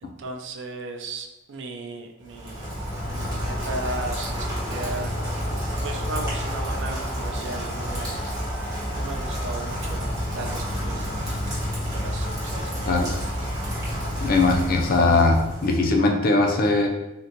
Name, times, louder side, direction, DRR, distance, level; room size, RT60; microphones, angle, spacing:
voice 1, 0.0-2.8 3.1-5.2 5.8-8.1 8.9-11.4 11.9-13.4, right 2 dB, 65° right, 5 dB, 0.4 m, -36 dB
Rain, 2.2-16.1, equal, 20° right, 1.1 m, -29 dB
voice 2, 14.2-16.9, left 3 dB, 45° left, 3 dB, 0.4 m, -20 dB
3.8 x 2.2 x 2.8 m, 0.98 s
head